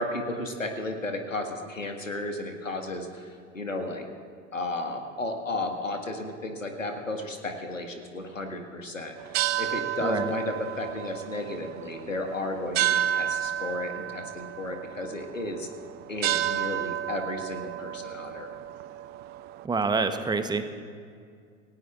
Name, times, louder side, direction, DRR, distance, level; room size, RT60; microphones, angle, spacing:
voice 1, 0.0-4.1 4.5-15.7 16.1-18.5, left 2 dB, 85° left, 4 dB, 1.8 m, -33 dB
sound 1, 9.2-19.7, right 12 dB, 25° right, 0.4 m, -32 dB
voice 2, 19.6-20.8, right 4 dB, 10° right, 9 dB, 1.0 m, -27 dB
28.0 x 17.0 x 2.5 m, 2.2 s
figure-of-eight pair, 80°, 38 cm